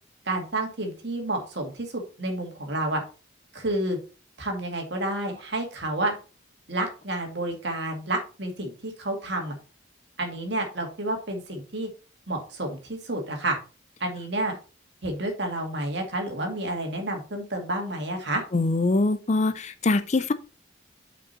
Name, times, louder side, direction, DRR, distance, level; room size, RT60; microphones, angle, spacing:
voice 1, 0.3-3.0 3.5-4.0 4.4-6.1 6.7-9.5 10.2-11.9 12.3-13.6 14.0-14.6 15.0-18.4, right 1 dB, 55° right, 2.1 m, -30 dB
voice 2, 18.5-20.3, left 3 dB, 35° left, 0.4 m, -23 dB
6.2 x 5.3 x 4.3 m
head